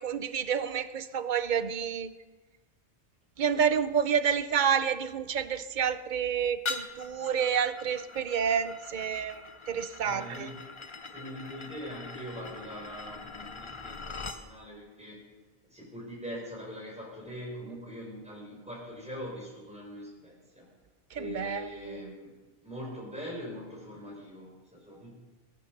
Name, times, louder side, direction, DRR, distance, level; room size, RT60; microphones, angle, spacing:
voice 1, 0.0-2.1 3.4-10.5 21.1-21.7, right 7 dB, 50° right, 13 dB, 0.7 m, -29 dB
sound 1, 6.6-14.4, left 3 dB, 30° left, 0.7 m, -42 dB
voice 2, 10.0-10.7 11.1-15.3 15.6-20.7 21.1-22.3 22.6-25.1, equal, 5° right, -2 dB, 4.3 m, -42 dB
20.5 x 9.8 x 5.9 m, 1.3 s
omnidirectional pair, 1.2 m